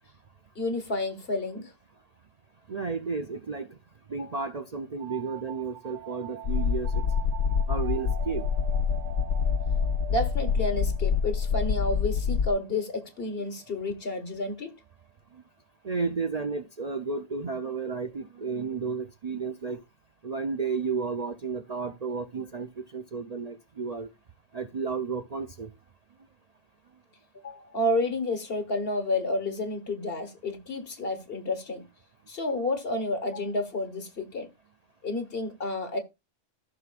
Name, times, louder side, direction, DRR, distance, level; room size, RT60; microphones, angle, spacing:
voice 1, 0.5-1.7 4.2-4.3 10.1-14.8 27.3-31.8 32.3-34.5 35.0-36.0, left 2 dB, 55° left, 1.5 m, -30 dB
voice 2, 2.7-3.7 4.1-6.9 7.7-8.4 15.8-19.8 20.2-24.1 24.5-25.7, right 5 dB, 45° right, 0.5 m, -32 dB
sound 1, 5.0-14.4, right 12 dB, 90° right, 1.0 m, -46 dB
sound 2, 6.4-12.5, left 6 dB, 75° left, 1.0 m, -26 dB
14.5 x 6.0 x 2.4 m
omnidirectional pair, 1.2 m